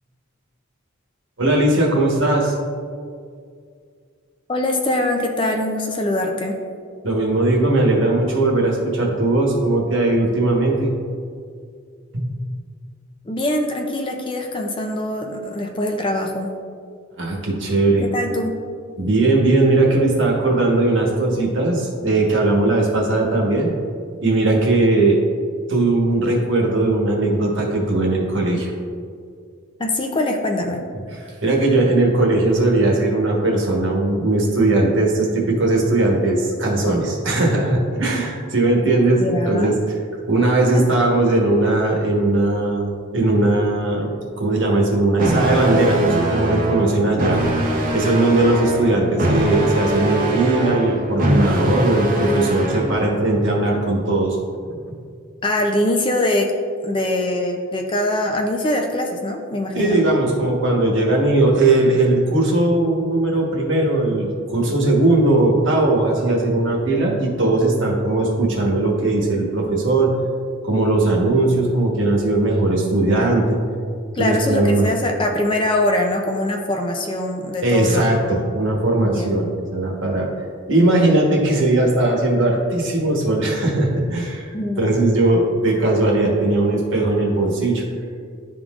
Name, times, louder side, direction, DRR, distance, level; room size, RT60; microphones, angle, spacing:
voice 1, 1.4-2.5 7.0-10.9 12.1-12.3 17.2-18.0 19.0-23.7 24.2-25.2 25.7-28.7 31.1-40.0 40.3-44.1 44.4-47.4 47.9-54.4 54.9-55.0 59.7-70.1 70.6-73.6 74.2-74.9 77.6-80.3 80.7-84.5 84.8-87.8, right 2 dB, 60° right, -1 dB, 1.2 m, -18 dB
voice 2, 4.5-6.6 13.3-16.5 18.0-18.5 29.8-30.8 39.2-39.8 40.7-40.9 55.4-56.5 56.8-60.0 74.1-78.1 79.0-79.3 84.5-85.1, left 1 dB, 25° left, 2 dB, 0.4 m, -23 dB
sound 1, 45.2-53.2, right 1 dB, 40° right, 0.7 m, -22 dB
11.0 x 3.7 x 2.4 m, 2.2 s
head